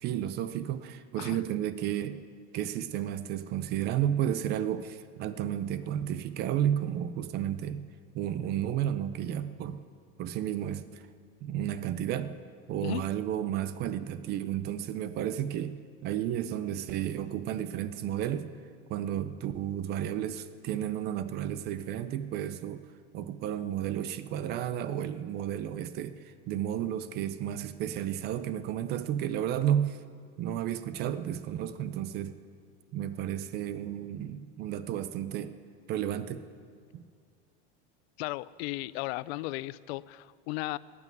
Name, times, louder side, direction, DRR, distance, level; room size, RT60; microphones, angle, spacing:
voice 1, 0.0-2.2 2.5-7.8 8.1-9.8 10.2-11.1 11.4-12.3 12.7-18.5 18.9-22.8 23.1-30.0 30.4-32.4 32.9-35.5 35.9-36.5 36.9-37.0, right 10 dB, 35° right, 12 dB, 0.4 m, -32 dB
voice 2, 38.2-40.8, left 19 dB, 75° left, 20 dB, 0.4 m, -35 dB
18.0 x 6.1 x 9.2 m, 2.2 s
cardioid pair, 165°, 31 cm